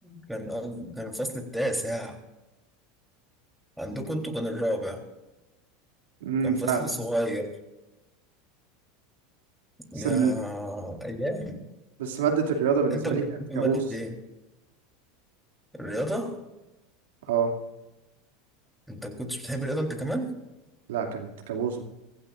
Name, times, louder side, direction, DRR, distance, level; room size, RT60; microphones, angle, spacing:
voice 1, 0.0-2.2 3.8-5.0 6.4-7.4 9.9-11.6 12.9-14.1 15.7-16.4 18.9-20.3, equal, ahead, 2 dB, 3.7 m, -31 dB
voice 2, 6.2-6.8 10.0-10.3 12.0-13.2 13.6-13.8 17.3-17.5 20.9-21.8, right 6 dB, 75° right, 3 dB, 2.7 m, -26 dB
25.0 x 15.5 x 2.6 m, 1.0 s
hypercardioid pair, 90°, 0 cm